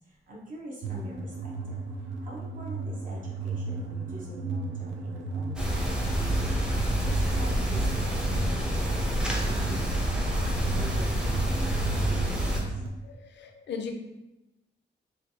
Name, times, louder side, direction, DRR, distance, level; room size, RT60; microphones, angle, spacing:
voice 1, 0.3-1.3 2.2-5.5 5.8-6.1 7.0-8.6 8.9-11.6 11.9-12.5, right 1 dB, 45° right, -4 dB, 0.7 m, -44 dB
sound 1, 0.8-12.9, right 3 dB, 85° right, 0.5 m, -35 dB
sound 2, 5.6-12.6, equal, 5° right, 0.5 m, -28 dB
voice 2, 13.0-13.9, left 6 dB, 70° left, 4 dB, 0.5 m, -38 dB
4.3 x 2.3 x 2.7 m, 0.97 s
wide cardioid pair, 150°, 19 cm